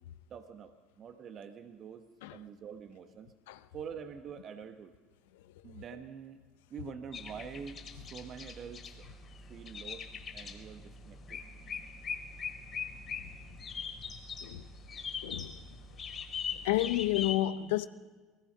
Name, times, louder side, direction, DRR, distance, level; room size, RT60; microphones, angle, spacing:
voice 1, 0.3-3.3 3.7-4.9 5.6-6.4 6.7-9.0 9.5-10.1 10.3-11.4, right 7 dB, 45° right, 1.5 m, -46 dB
sound 1, 7.1-17.3, left 6 dB, 40° left, 4.0 m, -42 dB
voice 2, 15.2-15.6 16.6-17.9, left 15 dB, 75° left, 0.8 m, -30 dB
23.5 x 20.5 x 5.6 m
hypercardioid pair, 70°, 0 cm